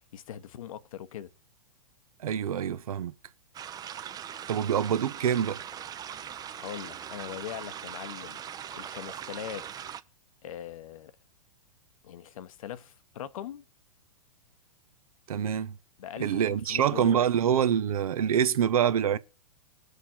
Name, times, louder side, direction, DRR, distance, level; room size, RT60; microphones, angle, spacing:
voice 1, 0.1-1.3 6.6-8.4 8.7-9.9 10.4-11.1 12.0-13.6 16.0-17.2, left 10 dB, 65° left, 1.0 m, -41 dB
voice 2, 2.2-3.1 4.5-5.6 15.3-15.8 16.2-19.2, right 9 dB, 70° right, 0.9 m, -26 dB
sound 1, 3.5-10.0, right 9 dB, 20° right, 0.6 m, -41 dB
20.0 x 6.7 x 4.4 m
hypercardioid pair, 115°, 19 cm